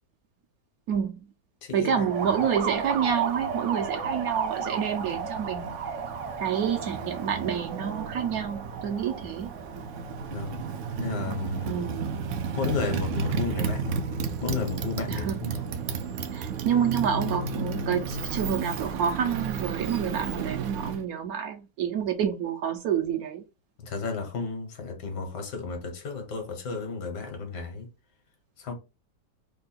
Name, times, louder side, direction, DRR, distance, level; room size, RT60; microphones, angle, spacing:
voice 1, 0.9-1.2 1.7-5.7 6.4-9.5 11.6-12.2 15.1-15.4 16.3-23.4, right 8 dB, 70° right, 0.9 m, -28 dB
voice 2, 1.6-2.1 4.0-4.1 10.3-10.6 11.0-11.9 12.5-14.0 14.4-15.6 23.8-27.9 28.6-28.7, left 4 dB, 75° left, 1.7 m, -33 dB
Motorcycle, 2.0-21.0, right 5 dB, 85° right, 0.6 m, -32 dB
3.6 x 2.2 x 3.9 m
omnidirectional pair, 1.8 m